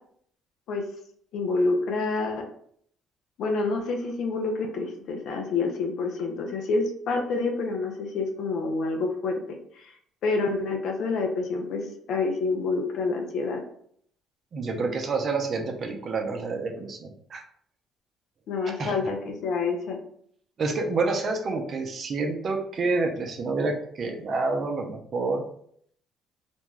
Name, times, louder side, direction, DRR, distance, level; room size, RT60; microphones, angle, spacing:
voice 1, 1.3-2.4 3.4-9.9 10.2-13.6 18.5-20.0, left 3 dB, 70° left, 3 dB, 0.6 m, -28 dB
voice 2, 14.5-17.4 18.6-19.0 20.6-25.4, right 3 dB, 50° right, 3 dB, 0.6 m, -28 dB
2.6 x 2.2 x 3.1 m, 0.65 s
supercardioid pair, 80°, 0 cm